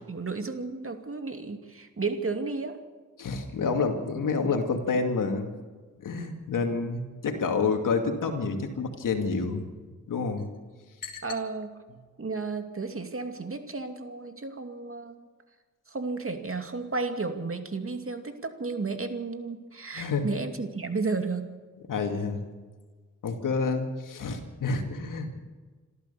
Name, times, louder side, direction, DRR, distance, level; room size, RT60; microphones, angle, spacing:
voice 1, 0.1-2.8 11.2-11.7 12.2-15.2 15.9-21.6, right 4 dB, 45° right, 7 dB, 2.5 m, -33 dB
voice 2, 3.2-5.5 6.0-9.7 10.1-10.5 11.0-11.2 19.9-20.2 21.9-22.4 23.2-25.4, left 4 dB, 85° left, 5 dB, 2.4 m, -28 dB
26.5 x 14.0 x 7.0 m, 1.4 s
cardioid pair, 45°, 31 cm